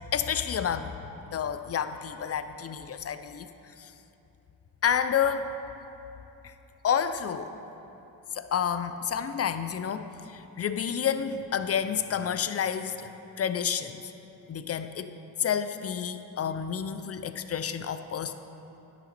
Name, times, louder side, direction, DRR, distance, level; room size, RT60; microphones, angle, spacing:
voice 1, 0.1-0.9 1.3-3.5 3.8-3.9 4.8-5.5 6.4-6.5 6.8-7.5 8.3-13.1 13.4-14.0 14.5-15.1 15.4-18.3, left 8 dB, 40° left, 10 dB, 0.5 m, -29 dB
10.0 x 6.0 x 4.3 m, 2.9 s
supercardioid pair, 55°, 40 cm